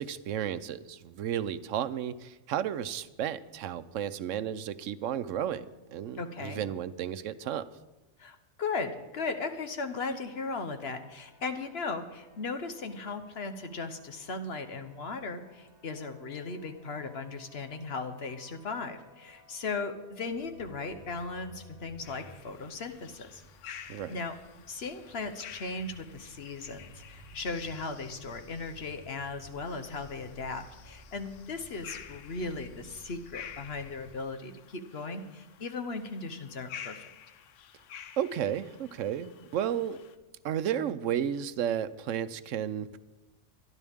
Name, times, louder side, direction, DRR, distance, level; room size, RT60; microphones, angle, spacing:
voice 1, 0.0-7.7 23.9-24.2 38.2-40.0 40.4-43.0, right 9 dB, 80° right, 14 dB, 1.0 m, -33 dB
voice 2, 6.2-6.6 8.2-23.4 24.1-24.3 24.7-37.1, left 3 dB, 55° left, 8 dB, 1.2 m, -37 dB
sound 1, 10.1-22.3, left 1 dB, 10° left, 3.9 m, -60 dB
sound 2, 20.3-34.1, equal, 10° right, 4.2 m, -55 dB
sound 3, 22.0-40.2, left 9 dB, 75° left, 1.0 m, -50 dB
24.0 x 11.0 x 3.6 m, 1.0 s
omnidirectional pair, 1.3 m